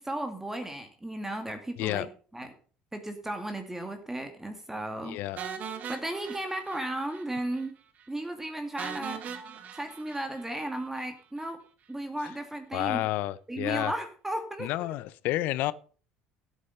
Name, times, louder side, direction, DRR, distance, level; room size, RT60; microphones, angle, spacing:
voice 1, 0.0-2.1 2.3-2.5 2.9-5.2 5.9-7.7 8.1-9.2 9.7-11.6 11.9-13.1 13.5-14.9, right 1 dB, 10° right, 2.2 m, -35 dB
voice 2, 5.0-5.4 12.7-13.9 14.6-15.7, left 16 dB, 65° left, 0.6 m, -30 dB
sound 1, 5.4-7.3 7.5-7.7 8.0-8.1 8.8-11.1, right 7 dB, 50° right, 1.8 m, -40 dB
13.0 x 8.3 x 5.4 m
hypercardioid pair, 75°, 3 cm